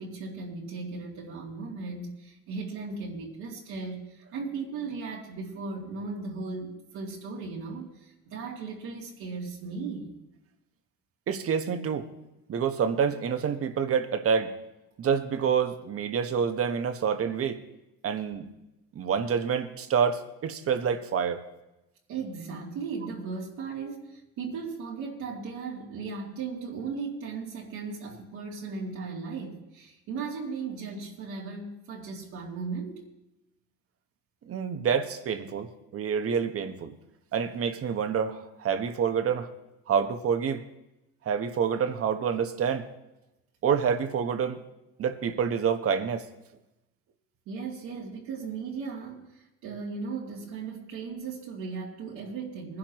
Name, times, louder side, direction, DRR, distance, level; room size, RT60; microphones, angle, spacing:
voice 1, 0.0-10.1 22.1-33.0 47.5-52.8, right 4 dB, 70° right, -4 dB, 2.7 m, -37 dB
voice 2, 11.3-12.1 12.5-14.5 15.0-17.6 18.0-18.5 18.9-21.4 34.5-36.9 37.3-39.5 39.9-40.6 41.2-42.9 43.6-44.6 45.0-46.2, right 7 dB, 50° right, 9 dB, 1.3 m, -27 dB
20.5 x 11.5 x 3.1 m, 0.93 s
supercardioid pair, 85°, 30 cm